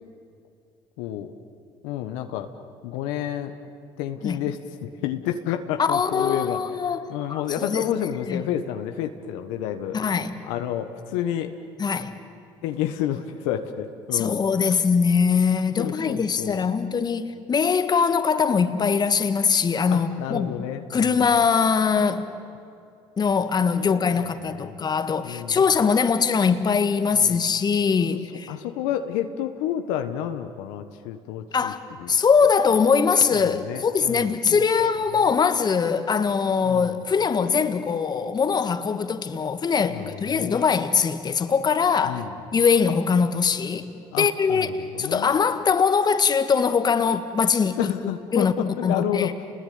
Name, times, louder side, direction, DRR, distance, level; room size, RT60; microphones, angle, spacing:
voice 1, 1.0-1.3 1.8-2.5 2.8-3.5 4.0-6.6 7.1-10.0 10.5-11.5 12.6-14.4 15.8-16.7 19.9-21.3 23.9-24.7 25.2-25.6 27.1-27.4 28.5-31.7 32.0-32.2 33.3-34.9 36.6-36.9 39.9-40.6 42.0-42.3 44.1-45.3 47.8-49.3, left 10 dB, 80° left, 1.4 m, -30 dB
voice 2, 5.8-7.0 7.3-7.8 8.3-8.4 9.9-10.4 11.8-12.1 14.1-20.6 20.9-22.3 23.2-28.5 31.5-31.8 32.1-42.2 42.5-43.9 44.2-47.9 48.3-48.5 48.8-49.3, left 6 dB, 40° left, 1.9 m, -22 dB
29.5 x 20.5 x 9.6 m
supercardioid pair, 70°, 11 cm